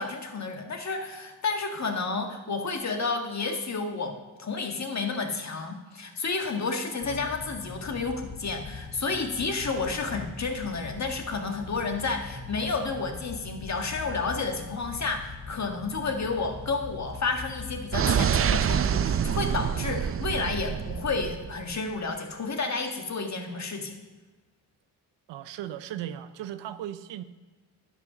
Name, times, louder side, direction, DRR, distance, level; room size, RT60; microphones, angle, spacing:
voice 1, 0.0-24.0, left 4 dB, 40° left, 4 dB, 1.6 m, -31 dB
sound 1, 7.0-17.9, left 4 dB, 70° left, 3.9 m, -42 dB
sound 2, 17.9-21.7, right 8 dB, 35° right, 0.4 m, -26 dB
voice 2, 25.3-27.2, right 11 dB, 85° right, 12 dB, 0.6 m, -37 dB
10.5 x 5.6 x 6.1 m, 1.2 s
cardioid pair, 65°, 42 cm